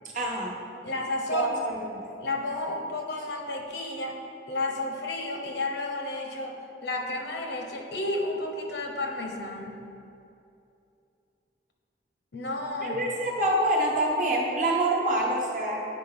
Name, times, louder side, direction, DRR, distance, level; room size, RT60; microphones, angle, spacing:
voice 1, 0.1-0.6 1.3-2.1 12.8-15.8, right 1 dB, 45° right, -2 dB, 1.1 m, -26 dB
voice 2, 0.8-1.6 2.2-4.2 4.5-9.8 12.3-13.0, left 2 dB, 75° left, 2 dB, 1.0 m, -32 dB
9.9 x 5.3 x 3.7 m, 2.6 s
head